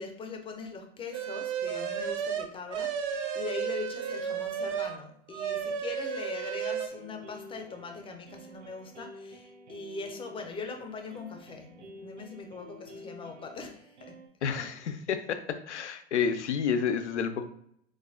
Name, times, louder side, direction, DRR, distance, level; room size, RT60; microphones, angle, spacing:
voice 1, 0.0-14.2, left 4 dB, 15° left, 4 dB, 0.5 m, -41 dB
sound 1, 1.1-5.0 5.3-6.9, right 8 dB, 40° right, 0.4 m, -33 dB
sound 2, 6.9-14.3, left 1 dB, 85° right, 0.6 m, -50 dB
voice 2, 14.4-17.4, left 7 dB, 90° left, 8 dB, 0.5 m, -30 dB
4.0 x 2.5 x 2.3 m, 0.70 s
hypercardioid pair, 95°, 34 cm